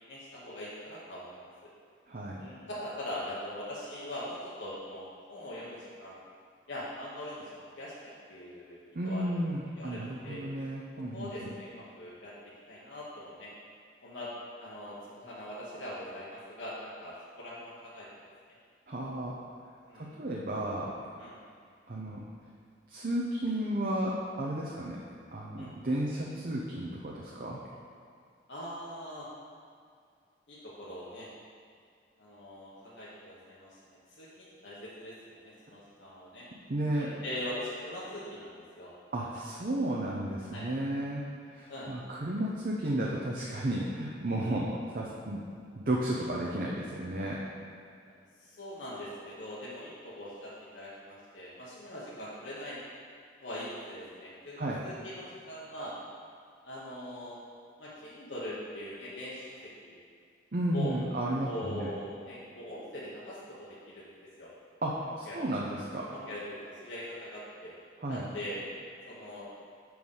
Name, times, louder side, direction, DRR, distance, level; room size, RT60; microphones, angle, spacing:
voice 1, 0.1-1.7 2.4-6.2 6.7-9.3 9.7-10.4 11.1-12.3 12.7-13.5 14.0-14.3 14.6-18.1 18.5-18.6 19.9-20.2 21.2-21.3 25.6-25.7 28.5-29.3 30.5-31.3 32.2-36.5 36.9-38.9 40.5-40.7 41.7-41.9 44.4-44.6 48.1-52.9 53.4-55.9 56.6-57.4 57.8-60.0 60.7-60.9 61.4-64.1 64.4-64.5 65.0-65.4 66.1-67.7 68.1-68.6 69.1-69.5, left 1 dB, 85° left, -8 dB, 1.1 m, -42 dB
voice 2, 2.1-2.4 8.9-11.5 18.9-19.4 19.9-20.9 21.9-22.2 22.9-25.0 25.3-27.6 36.7-37.1 39.1-41.2 41.5-45.5 45.7-47.4 54.6-54.8 60.5-61.9 64.8-66.1 68.0-68.3, right 1 dB, 50° right, -4 dB, 0.7 m, -33 dB
6.5 x 4.6 x 5.4 m, 2.2 s
head